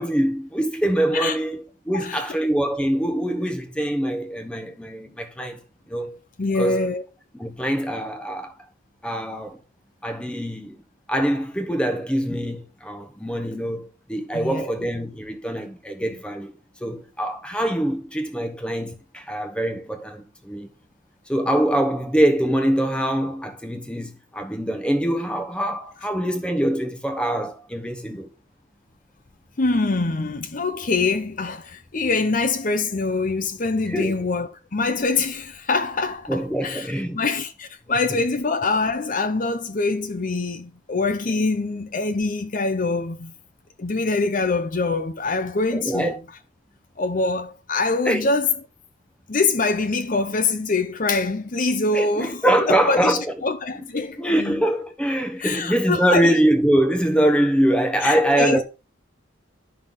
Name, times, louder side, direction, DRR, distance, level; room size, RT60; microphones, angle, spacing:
voice 1, 0.0-5.6 5.9-6.2 6.5-6.9 7.3-8.5 9.0-9.6 10.0-10.8 11.1-16.5 16.8-20.7 21.3-28.3 33.9-34.2 36.3-37.3 38.1-38.2 45.7-46.2 48.0-48.3 51.9-53.3 54.2-58.6, right 1 dB, 5° left, 1.0 m, -23 dB
voice 2, 1.9-2.3 6.4-7.0 14.3-14.7 29.6-36.9 37.1-43.3 43.8-46.2 47.0-48.5 49.3-52.4 52.7-54.6 55.4-56.3 58.0-58.6, left 3 dB, 40° left, 0.7 m, -24 dB
11.0 x 5.8 x 3.7 m
head